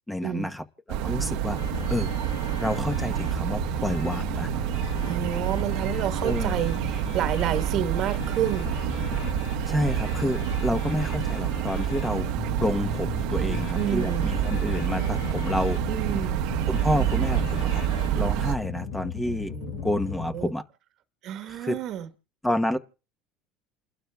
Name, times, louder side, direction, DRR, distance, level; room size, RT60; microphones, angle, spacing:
voice 1, 0.1-1.6 1.9-2.1 2.6-4.5 6.2-6.6 9.7-12.3 12.6-15.8 16.7-17.8 18.2-19.5 19.8-20.6 21.5-21.8 22.4-22.8, left 1 dB, 5° left, 1.0 m, -29 dB
sound 1, 0.9-18.6, right 10 dB, 75° right, 1.0 m, -28 dB
sound 2, 1.6-20.5, left 7 dB, 75° left, 1.5 m, -37 dB
voice 2, 5.0-8.7 13.8-14.3 15.9-16.4 19.5-19.9 20.3-20.5 21.2-22.1, right 10 dB, 60° right, 1.3 m, -30 dB
29.5 x 12.0 x 2.3 m
supercardioid pair, 90°, 0 cm